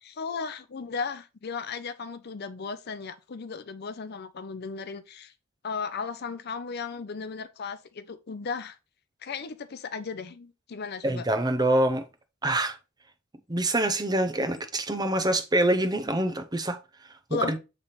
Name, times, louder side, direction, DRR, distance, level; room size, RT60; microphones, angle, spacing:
voice 1, 0.0-5.3 5.6-8.8 9.2-11.3 17.3-17.5, left 5 dB, 50° left, 0.6 m, -35 dB
voice 2, 11.0-12.0 12.4-12.8 13.5-16.8 17.5-17.6, right 1 dB, 20° right, 0.7 m, -25 dB
7.3 x 3.4 x 4.1 m
head